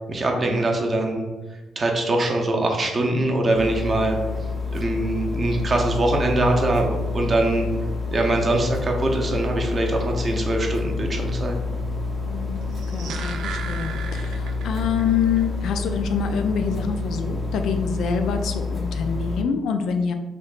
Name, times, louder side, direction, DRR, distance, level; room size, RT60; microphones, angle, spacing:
voice 1, 0.1-1.3 1.8-4.2 4.7-7.7 8.1-11.6, right 2 dB, 35° right, 1 dB, 0.6 m, -23 dB
sound 1, 3.5-19.4, left 3 dB, 10° left, 0.6 m, -28 dB
voice 2, 12.2-20.1, left 6 dB, 75° left, 6 dB, 0.3 m, -26 dB
sound 2, 12.6-15.1 15.4-15.5, right 5 dB, 75° right, 0.4 m, -35 dB
3.4 x 2.8 x 2.4 m, 1.2 s
cardioid pair, 90°, 0 cm